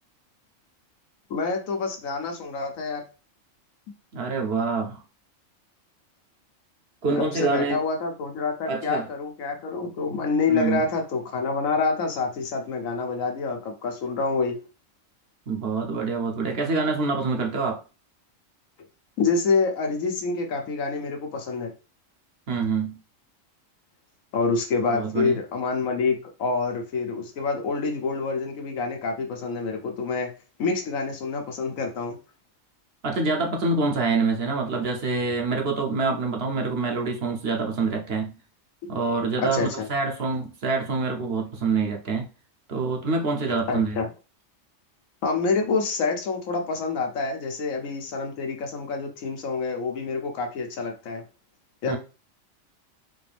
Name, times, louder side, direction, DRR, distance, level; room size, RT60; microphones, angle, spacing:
voice 1, 1.3-3.0 7.2-14.6 19.2-21.7 24.3-30.3 30.6-32.2 39.4-39.9 43.7-44.1 45.2-51.2 51.8-52.0, left 4 dB, 85° left, 1.3 m, -27 dB
voice 2, 4.1-5.0 7.0-7.8 8.7-9.1 10.5-10.9 15.5-17.8 22.5-23.0 24.9-25.4 33.0-38.4 38.9-42.3 42.7-44.0 51.9-52.0, right 4 dB, 55° right, 0.8 m, -26 dB
4.2 x 2.5 x 3.4 m
omnidirectional pair, 1.4 m